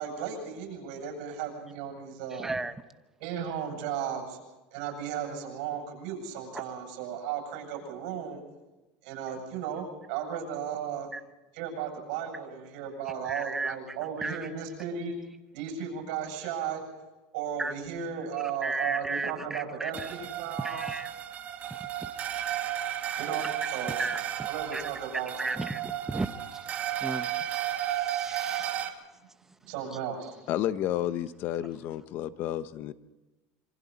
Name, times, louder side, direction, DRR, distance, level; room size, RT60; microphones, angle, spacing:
voice 1, 0.0-2.5 3.2-4.4 4.7-8.4 9.0-11.1 11.5-15.1 15.5-16.8 17.3-20.9 23.2-24.0 24.5-25.6 29.6-30.3, right 8 dB, 75° right, 2 dB, 7.9 m, -35 dB
voice 2, 2.4-2.7 6.5-6.6 11.1-11.2 13.2-13.8 14.2-14.4 17.6-17.7 18.6-20.1 20.6-21.1 22.0-22.1 24.0-24.2 24.7-24.8 25.4-26.3 26.5-26.7 27.0-27.6 27.9-28.7, right 2 dB, 10° right, 10 dB, 1.0 m, -34 dB
sound 1, 19.9-28.9, right 11 dB, 35° right, 2.1 m, -33 dB
voice 3, 30.5-32.9, left 12 dB, 50° left, 13 dB, 1.1 m, -31 dB
27.0 x 24.5 x 4.3 m, 1.1 s
supercardioid pair, 140°, 5 cm